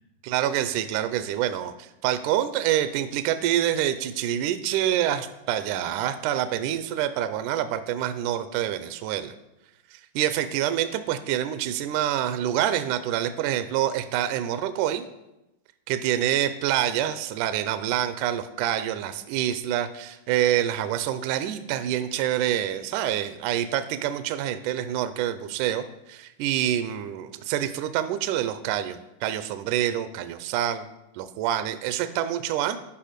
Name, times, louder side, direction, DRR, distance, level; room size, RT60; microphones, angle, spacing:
voice 1, 0.2-9.3 9.9-15.0 15.9-30.9 31.1-32.8, right 11 dB, 80° right, 11 dB, 1.9 m, -26 dB
11.0 x 5.5 x 5.1 m, 0.92 s
omnidirectional pair, 3.9 m